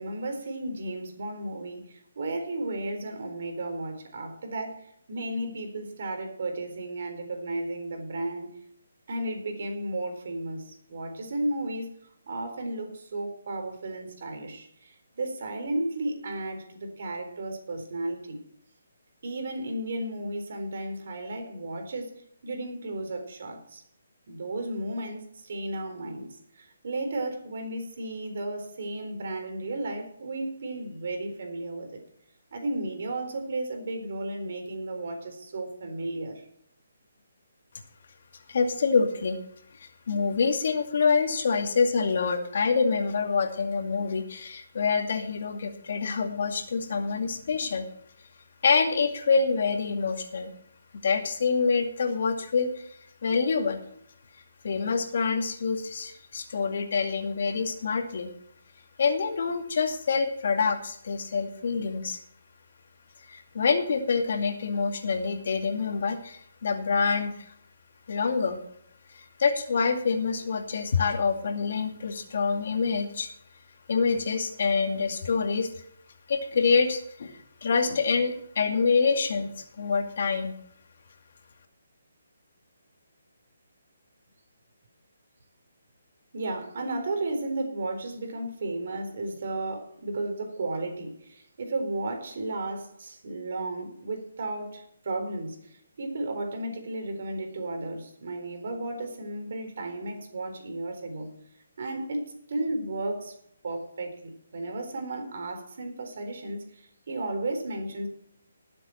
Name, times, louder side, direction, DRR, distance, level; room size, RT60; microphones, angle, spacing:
voice 1, 0.0-8.5 9.1-11.9 12.3-18.4 19.2-23.8 24.3-32.0 32.5-36.5 86.3-101.3 101.8-103.4 103.6-108.1, right 2 dB, 55° right, 4.0 m, -34 dB
voice 2, 38.5-39.4 39.8-47.9 48.6-50.5 51.0-53.0 53.2-53.8 54.6-58.3 59.0-62.2 63.3-67.5 68.1-68.6 69.1-73.3 73.9-75.7 76.3-80.5, left 5 dB, 55° left, 2.4 m, -26 dB
19.0 x 7.7 x 4.4 m
hypercardioid pair, 160°, 0 cm